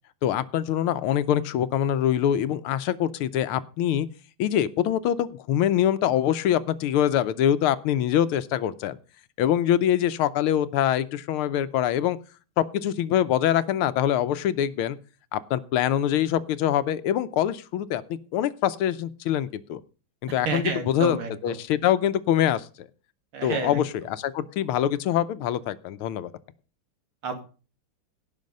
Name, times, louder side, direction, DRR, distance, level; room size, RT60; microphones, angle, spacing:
voice 1, 0.2-4.1 4.4-9.0 9.4-12.2 12.6-15.0 15.3-19.8 20.2-21.2 21.4-22.9 23.4-26.3, left 10 dB, 85° left, 14 dB, 1.6 m, -24 dB
voice 2, 20.3-21.6 23.3-23.8 27.2-27.4, right 4 dB, 85° right, 5 dB, 3.0 m, -30 dB
17.0 x 5.8 x 5.3 m, 0.36 s
omnidirectional pair, 2.3 m